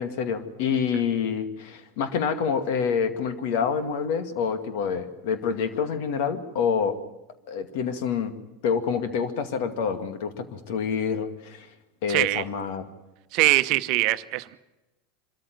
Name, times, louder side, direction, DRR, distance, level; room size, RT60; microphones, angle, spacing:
voice 1, 0.0-7.0 7.5-8.3 8.6-11.7 12.0-12.9, left 6 dB, 60° left, 8 dB, 2.2 m, -27 dB
voice 2, 12.1-12.4 13.3-14.6, right 20 dB, 55° right, 12 dB, 0.9 m, -22 dB
25.5 x 13.5 x 9.2 m, 1.0 s
hypercardioid pair, 90°, 0 cm